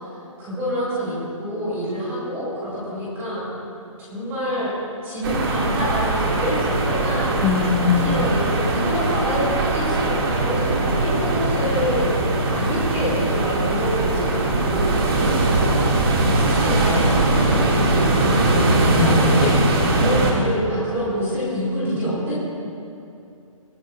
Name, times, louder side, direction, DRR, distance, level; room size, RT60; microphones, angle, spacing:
voice 1, 0.4-3.5 4.0-4.7 5.0-7.4 7.9-12.2 12.5-14.8 15.4-15.9 16.2-19.2 20.0-22.3, equal, 10° right, -8 dB, 4.0 m, -27 dB
sound 1, 5.2-20.3, right 2 dB, 45° right, 2.2 m, -20 dB
voice 2, 7.4-8.2 19.0-19.6, left 6 dB, 15° left, 2 dB, 0.8 m, -21 dB
22.0 x 16.0 x 2.5 m, 2.6 s
hypercardioid pair, 160°, 18 cm